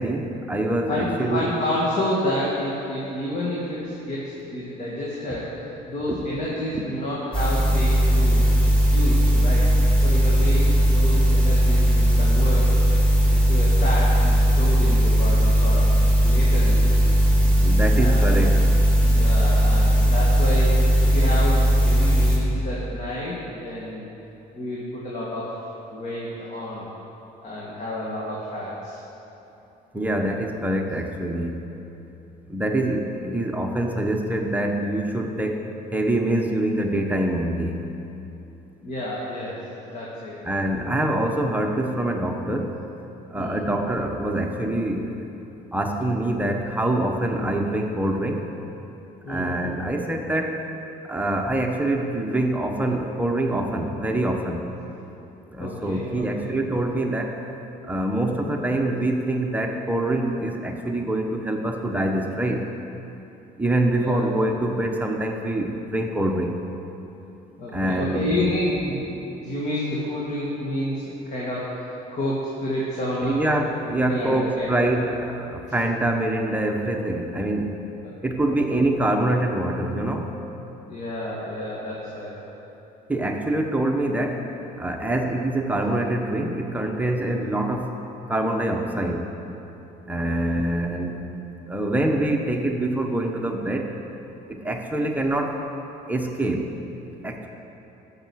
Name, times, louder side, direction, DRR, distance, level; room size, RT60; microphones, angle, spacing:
voice 1, 0.0-1.5 17.6-18.7 29.9-31.6 32.5-37.8 40.4-42.8 43.3-45.3 45.7-48.5 49.3-50.6 51.1-54.6 55.5-57.5 57.8-62.7 63.6-66.6 67.7-68.3 73.2-77.8 78.2-80.3 83.1-84.5 84.8-87.9 88.3-89.3 90.1-91.3 91.7-94.0 94.5-95.6 96.1-96.8 97.2-97.5, right 1 dB, 10° right, 2 dB, 1.0 m, -25 dB
voice 2, 0.9-8.5 8.8-9.7 10.0-13.0 13.3-15.9 16.2-17.2 18.0-18.4 19.1-24.1 24.5-26.9 27.4-29.0 38.8-40.4 43.3-43.7 49.2-49.6 55.6-56.5 63.9-64.3 67.6-73.4 74.0-74.7 80.9-82.4 90.2-90.7, left 1 dB, 45° left, -6 dB, 2.3 m, -30 dB
sound 1, 7.3-22.4, equal, 5° left, 2.7 m, -18 dB
14.0 x 6.7 x 6.4 m, 2.9 s
cardioid pair, 110°, 17 cm